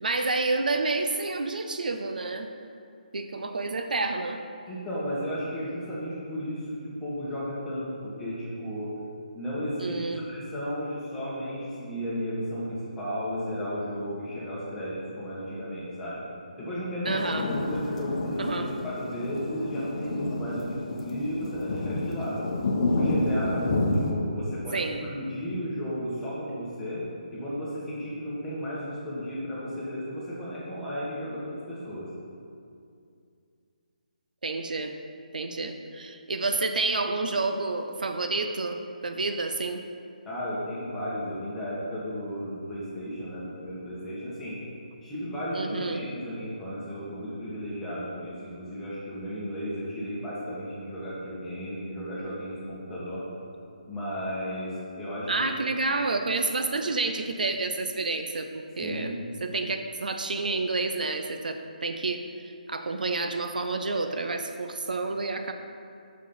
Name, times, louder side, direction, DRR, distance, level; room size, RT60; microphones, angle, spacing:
voice 1, 0.0-2.5 3.1-4.4 9.8-10.3 17.0-17.5 18.4-18.7 24.7-25.0 34.4-34.9 35.3-39.8 45.5-46.0 55.3-59.1 59.4-65.5, right 3 dB, 75° right, 6 dB, 0.5 m, -29 dB
voice 2, 4.7-8.9 9.3-16.2 16.6-22.4 22.9-27.1 27.3-32.1 40.3-44.6 45.0-53.3 53.9-55.5 58.8-59.3, equal, 5° left, -10 dB, 1.7 m, -34 dB
sound 1, 17.1-24.1, left 2 dB, 45° left, 0.9 m, -29 dB
6.0 x 4.7 x 5.6 m, 2.4 s
figure-of-eight pair, 150°, 5 cm